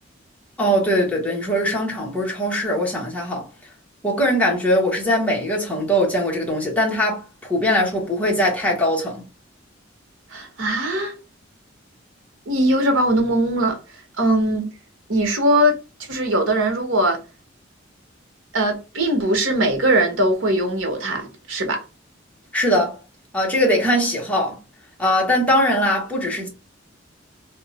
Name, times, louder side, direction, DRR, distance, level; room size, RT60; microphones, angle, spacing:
voice 1, 0.6-3.5 4.0-9.2 22.5-23.0 23.3-24.6 25.0-26.5, equal, 5° left, 1.1 m, -21 dB
voice 2, 10.3-11.1 12.5-13.8 14.2-14.7 15.1-15.8 16.1-17.2 18.5-21.8, right 1 dB, 85° right, 1.0 m, -20 dB
2.8 x 2.3 x 4.0 m
head